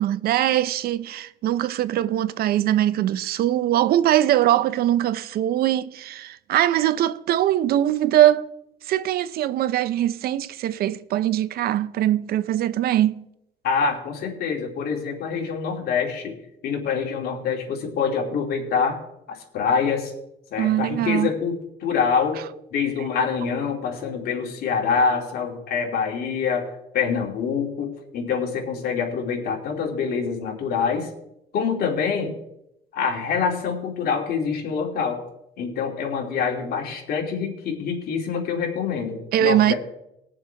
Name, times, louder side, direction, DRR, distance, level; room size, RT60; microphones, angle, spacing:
voice 1, 0.0-8.5 8.8-13.2 20.6-21.3 39.3-39.7, right 12 dB, 65° right, 0.6 m, -21 dB
voice 2, 13.6-16.3 16.6-19.0 19.3-20.1 20.5-22.4 22.7-31.1 31.5-32.4 32.9-35.2 35.6-39.7, left 6 dB, 65° left, 2.7 m, -25 dB
20.0 x 7.2 x 3.4 m
cardioid pair, 110°, 17 cm